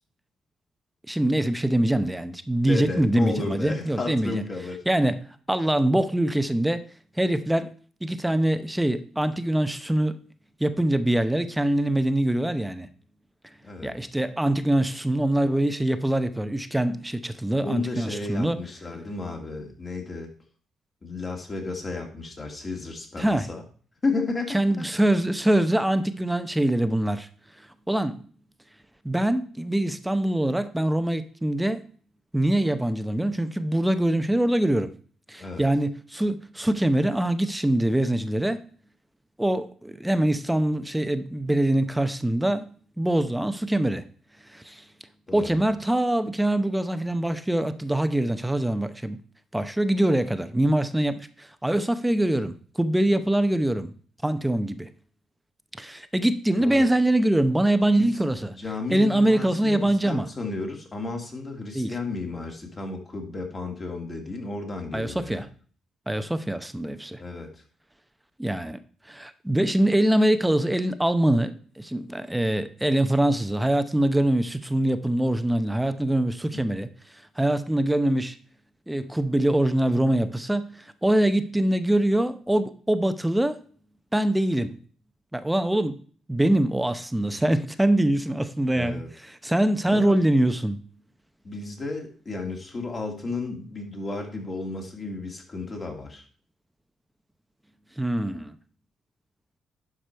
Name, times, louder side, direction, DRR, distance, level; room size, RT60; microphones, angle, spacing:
voice 1, 1.1-4.4 4.9-5.2 5.5-6.8 7.2-7.7 8.0-10.1 10.6-12.9 13.8-18.6 23.2-23.5 24.5-27.3 27.9-28.2 29.0-31.9 32.3-34.9 35.3-38.6 39.4-42.7 43.0-44.0 44.5-44.8 45.3-49.2 49.5-53.9 54.2-54.9 55.8-58.6 58.9-60.3 61.7-61.9 64.9-65.5 66.1-67.2 68.4-68.8 69.1-76.9 77.4-78.4 78.9-83.6 84.1-84.8 85.3-86.0 86.3-89.0 89.4-90.8 98.0-98.6, right 1 dB, 5° right, 0.7 m, -24 dB
voice 2, 2.6-4.8 13.6-13.9 17.6-20.3 21.0-23.6 24.0-24.8 35.4-35.7 45.3-45.6 56.6-56.9 57.9-58.1 58.5-65.5 67.2-67.6 76.5-76.6 87.2-87.4 88.7-89.1 89.8-90.2 91.4-96.2, left 3 dB, 35° left, 2.5 m, -33 dB
11.0 x 5.0 x 4.5 m
cardioid pair, 90°, 0 cm